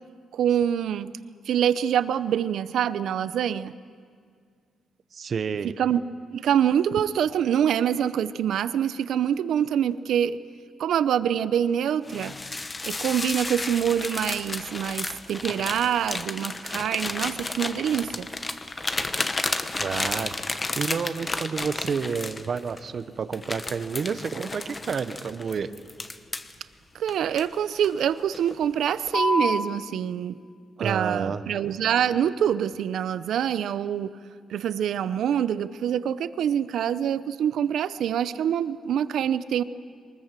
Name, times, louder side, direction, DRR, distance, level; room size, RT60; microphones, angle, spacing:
voice 1, 0.3-1.1 1.5-3.7 5.6-6.0 6.3-10.4 10.8-12.3 12.8-18.3 26.9-30.4 30.8-34.2 34.5-39.6, right 9 dB, 75° right, 14 dB, 0.7 m, -25 dB
voice 2, 5.1-5.7 19.8-20.3 20.8-25.7 30.8-31.4, right 6 dB, 45° right, 12 dB, 0.9 m, -29 dB
sound 1, 12.1-22.8 23.3-26.5 27.1-28.0 28.3-28.6 29.1-29.6, left 2 dB, 20° left, 0.9 m, -31 dB
23.0 x 20.0 x 7.5 m, 2.1 s
cardioid pair, 145°, 0 cm